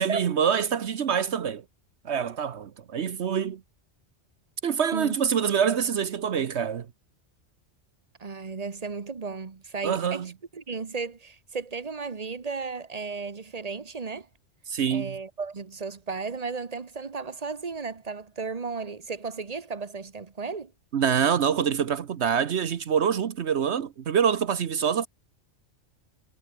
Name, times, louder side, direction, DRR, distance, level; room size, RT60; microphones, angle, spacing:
voice 1, 0.0-1.6 2.0-3.6 4.6-6.9 9.8-10.3 14.7-15.2 20.9-25.1, right 7 dB, 70° right, 1.2 m, -25 dB
voice 2, 8.2-14.3 14.9-20.7, right 4 dB, 35° right, 1.1 m, -34 dB
omnidirectional pair, 1.2 m